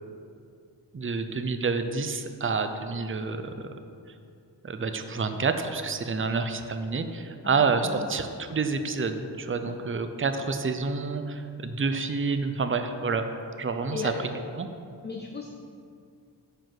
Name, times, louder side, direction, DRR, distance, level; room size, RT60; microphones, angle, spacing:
voice 1, 0.9-3.5 4.6-13.3 13.6-14.3 14.6-14.7, right 4 dB, 30° right, 8 dB, 0.6 m, -28 dB
voice 2, 7.4-8.2 9.6-9.7 13.9-14.3 15.0-15.5, left 5 dB, 25° left, 3 dB, 0.5 m, -36 dB
9.2 x 5.2 x 5.9 m, 2.4 s
wide cardioid pair, 85°, 44 cm